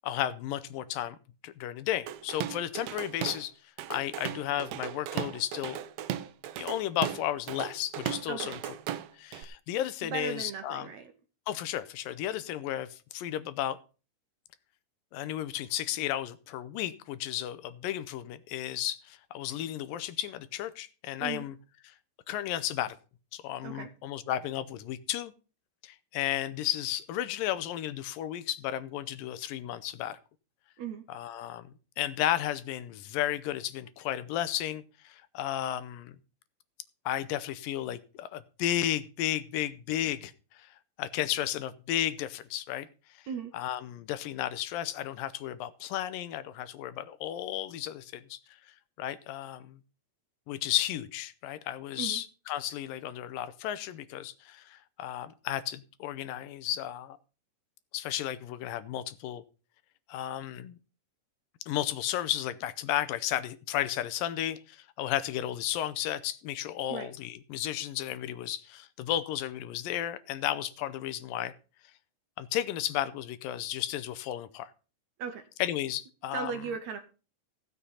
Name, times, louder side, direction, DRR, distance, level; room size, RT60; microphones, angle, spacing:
voice 1, 0.0-1.2 1.4-3.5 3.9-5.8 6.6-8.6 9.1-10.9 11.5-13.8 15.1-21.6 21.8-21.9 22.3-23.0 23.3-25.3 25.8-30.2 31.1-31.7 32.0-36.1 37.1-42.9 43.1-43.2 43.5-48.6 49.0-49.8 50.5-57.2 57.9-59.4 60.1-60.8 61.7-71.5 72.4-74.7 75.6-76.5, left 12 dB, 80° left, 2.4 m, -33 dB
Drum kit / Drum, 2.1-3.5 3.8-9.4, right 11 dB, 90° right, 1.5 m, -36 dB
voice 2, 8.3-8.6 10.1-11.1 21.2-21.4 23.6-23.9 30.8-31.0 43.3-43.6 52.0-52.2 66.9-67.1 75.2-75.5 76.3-77.0, right 7 dB, 70° right, 1.8 m, -37 dB
15.5 x 6.8 x 5.6 m
omnidirectional pair, 4.0 m